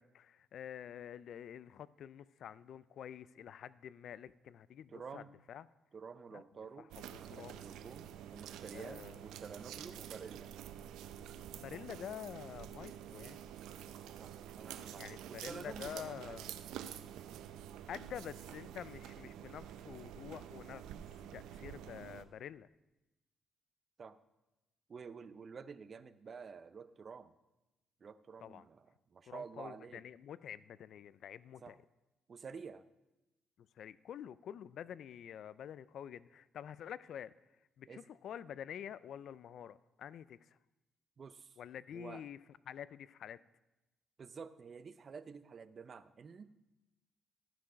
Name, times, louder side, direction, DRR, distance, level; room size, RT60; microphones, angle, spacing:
voice 1, 0.0-5.7 6.3-6.4 6.8-7.6 8.7-9.2 11.5-13.4 15.0-16.6 17.9-20.8 21.3-22.7 28.4-28.7 29.3-31.8 33.6-37.3 37.8-40.6 41.6-43.4, left 9 dB, 70° left, 18 dB, 0.3 m, -48 dB
voice 2, 4.9-5.3 5.9-6.9 7.2-10.5 14.2-16.4 24.0-24.2 24.9-27.3 28.0-28.9 29.1-30.0 31.6-31.8 32.3-32.8 37.9-38.0 41.2-41.6 41.9-42.2 44.2-46.5, right 5 dB, 45° right, 13 dB, 0.5 m, -50 dB
sound 1, 6.9-22.3, right 10 dB, 90° right, 0.5 m, -48 dB
13.5 x 5.9 x 5.0 m, 0.99 s
cardioid pair, 90°, 0 cm